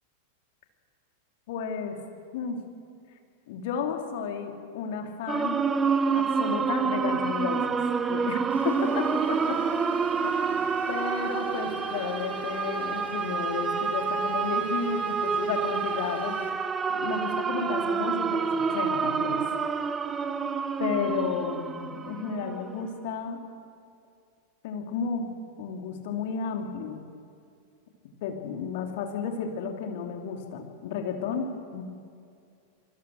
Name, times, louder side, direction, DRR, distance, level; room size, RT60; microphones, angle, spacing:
voice 1, 1.5-2.0 2.3-2.6 3.5-5.6 6.1-7.8 8.1-9.6 10.2-16.4 16.9-19.4 20.8-23.5 24.6-27.1 28.2-31.8, left 6 dB, 50° left, 3 dB, 3.1 m, -33 dB
sound 1, 5.3-23.0, right 5 dB, 20° right, 1.1 m, -28 dB
Vehicle / Engine, 8.5-16.5, left 4 dB, 70° left, 2.3 m, -46 dB
26.5 x 23.5 x 6.5 m, 2.4 s
figure-of-eight pair, 90°, 0 cm